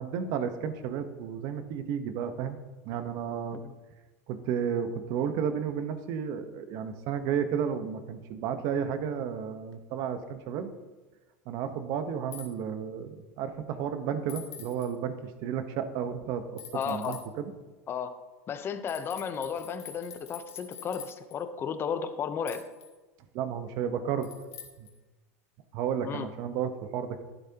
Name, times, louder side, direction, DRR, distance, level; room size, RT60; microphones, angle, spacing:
voice 1, 0.0-2.6 2.8-3.6 4.3-10.7 11.5-17.5 23.3-24.3 24.8-24.9 25.7-27.2, right 8 dB, 55° right, 9 dB, 1.1 m, -32 dB
sound 1, 12.3-12.5 14.3-14.9 16.6-17.2 18.9-21.4 22.5-22.9 24.2-24.9, left 8 dB, 75° left, 2.4 m, -45 dB
voice 2, 16.7-17.2 17.9-18.2 18.5-22.6 26.0-26.3, left 7 dB, 30° left, 10 dB, 0.8 m, -34 dB
11.5 x 11.0 x 2.9 m, 1.2 s
supercardioid pair, 120°, 8 cm